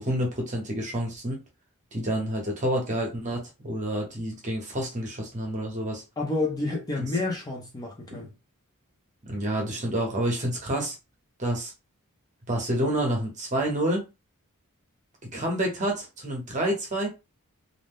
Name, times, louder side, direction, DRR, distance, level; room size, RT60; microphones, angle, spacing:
voice 1, 0.0-1.4 1.9-6.0 7.0-7.1 8.1-8.2 9.3-11.0 11.4-11.7 12.5-14.1 15.3-17.1, right 1 dB, 35° right, 0.9 m, -28 dB
voice 2, 6.2-8.3, left 2 dB, 15° left, 0.6 m, -29 dB
2.6 x 2.1 x 3.5 m
head